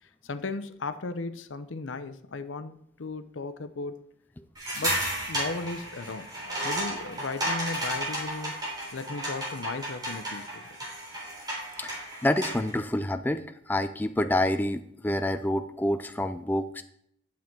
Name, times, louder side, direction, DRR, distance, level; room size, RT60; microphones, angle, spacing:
voice 1, 0.0-4.1 4.7-8.6 8.9-10.8, left 3 dB, 85° left, 10 dB, 0.7 m, -36 dB
sound 1, 4.6-12.7, right 1 dB, 20° right, 3.8 m, -33 dB
voice 2, 11.8-16.8, left 1 dB, 10° left, 9 dB, 0.3 m, -28 dB
10.0 x 7.1 x 4.5 m, 0.70 s
head